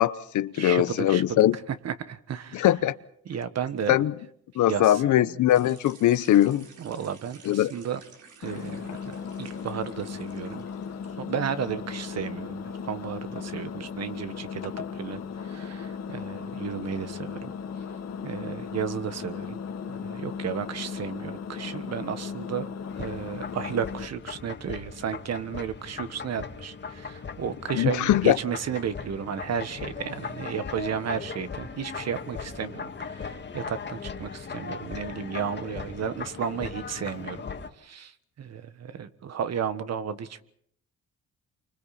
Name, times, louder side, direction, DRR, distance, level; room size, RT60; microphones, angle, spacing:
voice 1, 0.0-1.6 2.5-2.9 3.9-4.1 4.5-6.6 7.5-7.7 27.7-28.4, left 12 dB, 75° left, 1.0 m, -21 dB
voice 2, 0.5-1.4 1.7-2.7 3.2-4.0 4.7-5.4 6.8-8.0 8.4-10.7 11.2-17.5 18.2-19.6 19.9-22.7 23.0-37.4 37.8-40.4, right 7 dB, 60° right, 1.6 m, -33 dB
sound 1, 5.5-11.0, right 5 dB, 75° right, 4.7 m, -53 dB
Engine, 8.4-24.1, left 6 dB, 60° left, 1.8 m, -37 dB
sound 2, 22.9-37.7, left 5 dB, 35° left, 2.1 m, -38 dB
29.0 x 25.0 x 4.3 m
cardioid pair, 90°, 30 cm